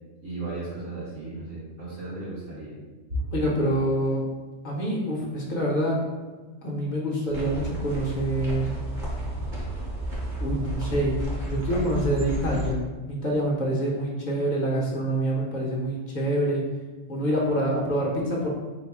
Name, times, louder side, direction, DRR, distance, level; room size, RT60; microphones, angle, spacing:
voice 1, 0.2-2.7 3.1-3.2, right 2 dB, 70° right, -11 dB, 2.0 m, -35 dB
voice 2, 3.3-4.3 4.6-6.0 6.6-8.8 10.4-11.2 11.4-12.8 13.1-16.6 17.1-18.5, right 1 dB, 40° left, -4 dB, 1.0 m, -26 dB
sound 1, 7.3-12.7, right 1 dB, 40° right, 1.1 m, -32 dB
4.1 x 2.2 x 4.6 m, 1.3 s
omnidirectional pair, 1.3 m